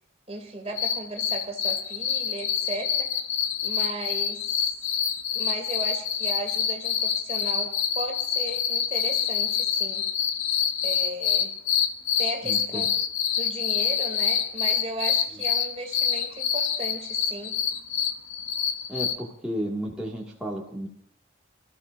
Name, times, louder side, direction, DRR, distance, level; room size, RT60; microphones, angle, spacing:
voice 1, 0.3-3.1 3.6-4.4 5.3-10.1 10.8-11.5 12.2-12.9 13.4-17.6, right 1 dB, 30° right, 3 dB, 2.7 m, -36 dB
sound 1, 0.7-19.1, left 8 dB, 75° left, 1.1 m, -26 dB
voice 2, 12.4-12.9 15.3-15.4 18.9-20.9, equal, 5° right, -5 dB, 2.1 m, -33 dB
26.0 x 14.0 x 2.6 m, 0.63 s
head